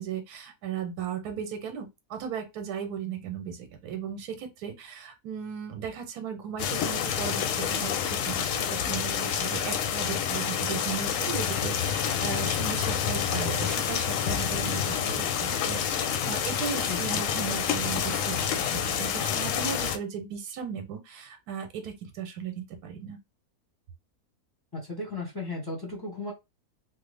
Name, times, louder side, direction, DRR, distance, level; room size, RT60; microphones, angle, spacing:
voice 1, 0.0-7.9 8.2-23.2, right 7 dB, 85° right, 1.2 m, -36 dB
sound 1, 6.6-20.0, left 8 dB, 70° left, 0.8 m, -28 dB
voice 2, 16.9-17.2 24.7-26.3, left 2 dB, 20° left, 0.7 m, -35 dB
3.1 x 2.0 x 3.2 m
omnidirectional pair, 1.6 m